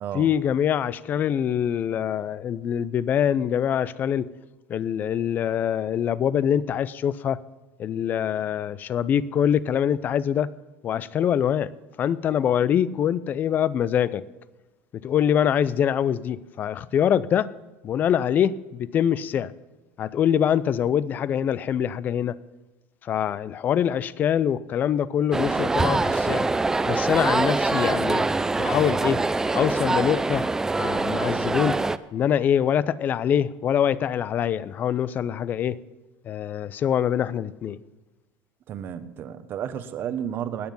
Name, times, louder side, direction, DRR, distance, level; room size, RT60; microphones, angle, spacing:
voice 1, 0.1-4.3 4.7-7.4 7.8-10.5 10.8-11.7 12.0-14.2 15.0-17.5 17.8-19.5 20.0-22.4 23.0-26.5 26.9-28.3 28.6-29.2 29.5-30.5 30.8-31.8 32.1-35.8 36.3-37.8, left 9 dB, 40° left, 19 dB, 0.5 m, -24 dB
sound 1, 25.3-32.0, right 3 dB, 10° right, 0.4 m, -24 dB
voice 2, 38.7-40.7, right 9 dB, 45° right, 11 dB, 1.0 m, -32 dB
20.0 x 7.2 x 5.4 m, 1.1 s
supercardioid pair, 125°, 5 cm